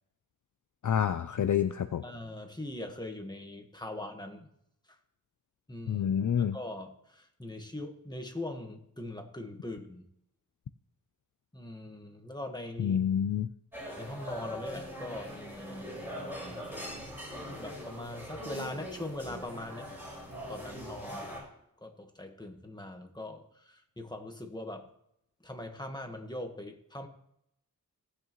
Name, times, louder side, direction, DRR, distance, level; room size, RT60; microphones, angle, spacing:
voice 1, 0.8-2.0 5.9-6.6 12.8-13.5, left 8 dB, 60° left, 9 dB, 0.5 m, -28 dB
voice 2, 2.0-4.5 4.9-5.0 5.7-6.1 6.4-10.0 11.5-13.0 14.0-15.9 16.5-17.1 17.6-19.9 20.5-21.4 21.8-24.9 25.4-27.1, left 1 dB, 10° left, 4 dB, 1.4 m, -41 dB
sound 1, 13.7-21.4, equal, 5° right, 5.2 m, -41 dB
18.0 x 8.2 x 3.1 m, 0.76 s
wide cardioid pair, 105°, 35 cm